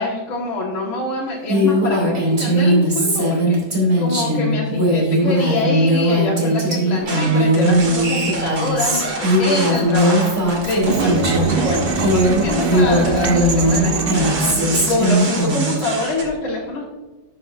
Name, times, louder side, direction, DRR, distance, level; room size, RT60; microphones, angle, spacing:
voice 1, 0.0-16.9, left 2 dB, 80° left, -6 dB, 2.4 m, -25 dB
Female speech woman speaking, 1.5-11.6 11.9-15.8, equal, 30° right, 2.8 m, -18 dB
sound 1, 7.0-16.3, right 3 dB, 70° right, 2.6 m, -30 dB
sound 2, 10.8-15.9, right 3 dB, 50° right, 0.7 m, -23 dB
12.5 x 6.8 x 2.6 m, 1.2 s
omnidirectional pair, 2.1 m